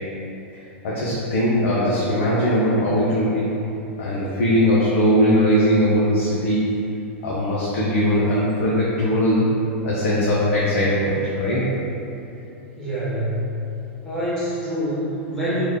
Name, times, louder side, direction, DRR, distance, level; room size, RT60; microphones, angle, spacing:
voice 1, 0.8-3.6 4.0-6.7 7.2-9.5 9.8-11.7, equal, 65° left, -7 dB, 0.7 m, -20 dB
voice 2, 12.8-13.6 14.0-15.6, equal, 5° left, -10 dB, 1.2 m, -26 dB
3.1 x 2.2 x 3.6 m, 2.8 s
hypercardioid pair, 110°, 7 cm